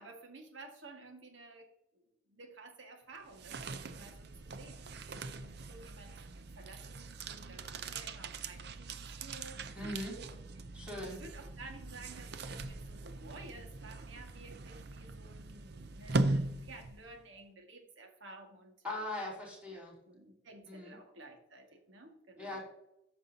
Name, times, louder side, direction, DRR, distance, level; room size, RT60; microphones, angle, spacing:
voice 1, 0.0-1.7 1.9-10.4 10.8-19.1 19.7-19.8 20.1-22.6, right 2 dB, 85° right, 3 dB, 1.8 m, -53 dB
sound 1, 3.1-17.2, right 2 dB, 55° right, 0.6 m, -40 dB
voice 2, 9.8-10.1 10.7-11.2 18.8-19.9 20.7-20.9 22.4-22.6, left 1 dB, 5° right, -5 dB, 3.0 m, -40 dB
13.0 x 5.4 x 2.8 m, 0.87 s
head